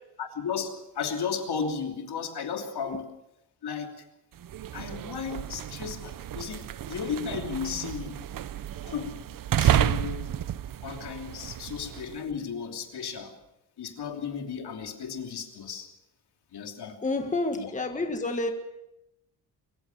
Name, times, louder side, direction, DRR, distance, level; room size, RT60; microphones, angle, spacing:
voice 1, 0.2-3.1 3.6-4.0 4.7-8.2 8.8-9.3 9.6-10.3 10.8-13.3 13.8-15.9 16.5-17.0 17.6-17.7, left 6 dB, 65° left, 4 dB, 3.0 m, -34 dB
sound 1, 4.4-12.2, right 11 dB, 50° right, 0.7 m, -31 dB
voice 2, 17.0-18.5, left 2 dB, 20° left, 5 dB, 1.6 m, -29 dB
24.0 x 15.5 x 7.1 m, 0.86 s
wide cardioid pair, 140°, 42 cm